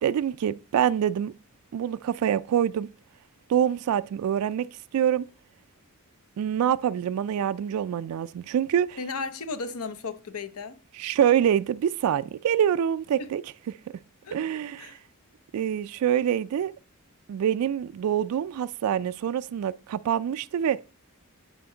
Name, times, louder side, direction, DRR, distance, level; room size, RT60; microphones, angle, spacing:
voice 1, 0.0-1.3 1.7-2.9 3.5-4.7 4.9-5.2 6.4-9.0 11.0-13.4 14.3-15.0 15.5-16.7 17.3-20.8, right 9 dB, 75° right, 0.3 m, -25 dB
voice 2, 9.0-10.8 13.2-13.3 14.2-14.4 14.8-15.0, left 4 dB, 75° left, 0.7 m, -35 dB
9.2 x 5.1 x 3.8 m
head